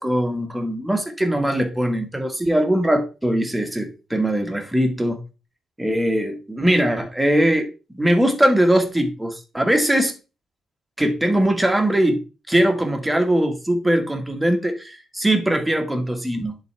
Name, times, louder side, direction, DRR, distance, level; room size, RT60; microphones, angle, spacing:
voice 1, 0.0-5.2 5.8-10.1 11.0-16.6, right 1 dB, 5° right, 1.6 m, -21 dB
10.5 x 3.9 x 3.4 m
cardioid pair, 90°, 0 cm